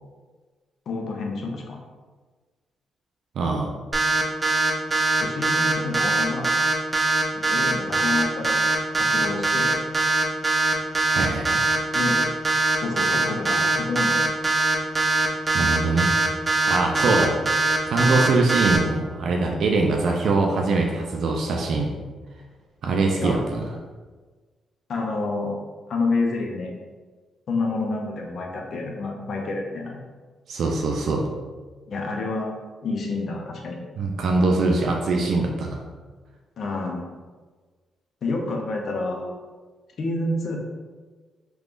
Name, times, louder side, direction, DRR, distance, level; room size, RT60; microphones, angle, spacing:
voice 1, 0.9-1.8 5.2-6.5 7.3-8.6 9.0-9.8 11.9-12.2 12.8-14.2 17.0-17.3 23.2-23.4 24.9-25.5 25.9-26.8 27.5-30.0 31.9-32.6 32.8-33.8 36.6-37.1 38.2-39.3 40.0-40.6, left 3 dB, 65° left, 1 dB, 0.6 m, -28 dB
voice 2, 3.4-3.7 11.1-11.6 15.5-16.1 16.7-17.3 17.9-22.0 22.8-23.6 30.5-31.3 34.0-35.8, right 3 dB, 70° right, 1 dB, 0.4 m, -22 dB
sound 1, 3.9-18.8, right 3 dB, 25° right, 0.6 m, -21 dB
3.4 x 3.0 x 2.5 m, 1.4 s
cardioid pair, 70°, 0 cm